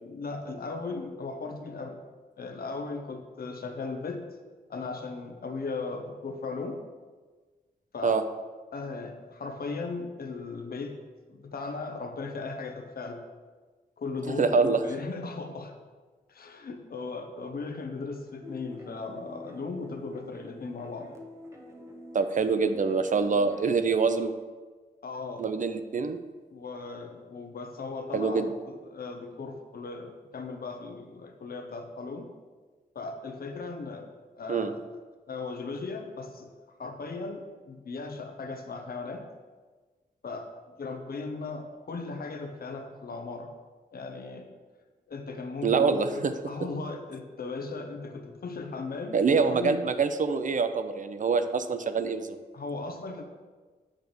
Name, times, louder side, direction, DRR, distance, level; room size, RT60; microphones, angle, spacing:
voice 1, 0.0-2.0 2.4-4.3 4.7-6.8 7.9-8.2 8.7-11.0 11.3-13.3 14.0-15.8 16.3-21.2 25.0-25.5 26.5-32.3 32.9-34.1 34.4-34.8 35.3-39.3 40.2-43.5 43.9-44.5 45.1-49.2 49.5-49.8 52.5-53.2, left 3 dB, 65° left, 5 dB, 0.9 m, -37 dB
voice 2, 14.4-14.8 22.1-24.3 25.4-26.2 28.1-28.5 34.5-34.7 45.6-46.3 49.1-52.4, right 5 dB, 55° right, 9 dB, 0.6 m, -25 dB
sound 1, 18.4-23.9, equal, 15° right, 1.1 m, -48 dB
8.8 x 3.4 x 6.2 m, 1.4 s
cardioid pair, 75°, 16 cm